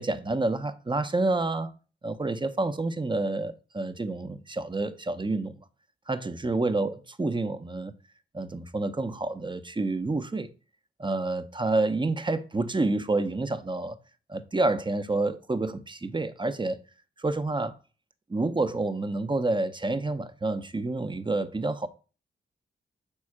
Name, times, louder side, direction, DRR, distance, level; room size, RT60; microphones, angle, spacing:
voice 1, 0.0-1.7 2.0-5.6 6.1-7.9 8.3-10.5 11.0-14.0 14.3-16.8 17.2-17.7 18.3-21.9, right 2 dB, 25° right, 0.8 m, -28 dB
5.4 x 4.3 x 4.9 m
cardioid pair, 50°, 20 cm